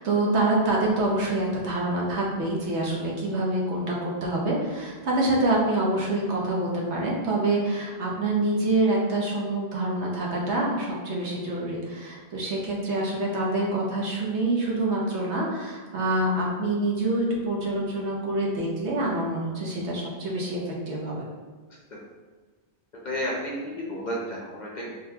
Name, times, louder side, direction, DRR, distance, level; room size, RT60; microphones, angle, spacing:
voice 1, 0.0-21.3, right 2 dB, 75° right, -3 dB, 1.1 m, -26 dB
voice 2, 23.0-25.0, equal, 50° left, -3 dB, 0.6 m, -32 dB
3.7 x 2.8 x 2.7 m, 1.4 s
omnidirectional pair, 1.2 m